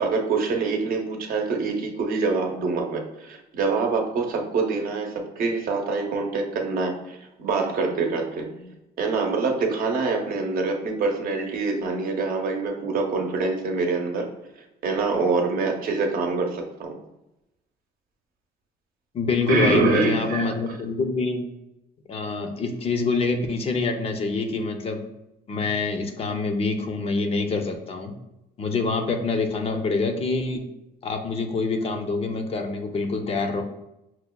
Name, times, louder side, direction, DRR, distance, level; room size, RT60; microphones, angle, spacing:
voice 1, 0.0-8.7 9.0-14.3 14.8-17.0 19.5-20.7, right 4 dB, 60° right, 3 dB, 0.7 m, -25 dB
voice 2, 19.1-21.4 22.1-25.0 25.5-28.1 28.6-30.6 31.0-33.6, left 3 dB, 35° left, 5 dB, 0.5 m, -26 dB
5.7 x 2.1 x 2.2 m, 0.90 s
cardioid pair, 110°, 17 cm